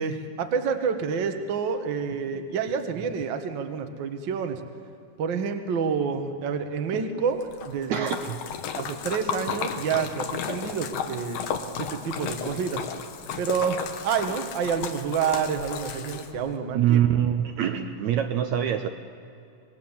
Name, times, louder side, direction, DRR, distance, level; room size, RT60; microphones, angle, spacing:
voice 1, 0.0-4.6 5.2-8.1 8.7-11.4 11.8-12.9 13.4-17.0, right 6 dB, 50° right, 6 dB, 1.4 m, -28 dB
Splash splatter, 7.4-16.5, left 7 dB, 75° left, 2.7 m, -34 dB
voice 2, 7.9-8.4 16.7-18.9, right 10 dB, 70° right, 7 dB, 1.9 m, -24 dB
26.5 x 21.0 x 7.3 m, 2.5 s
omnidirectional pair, 3.8 m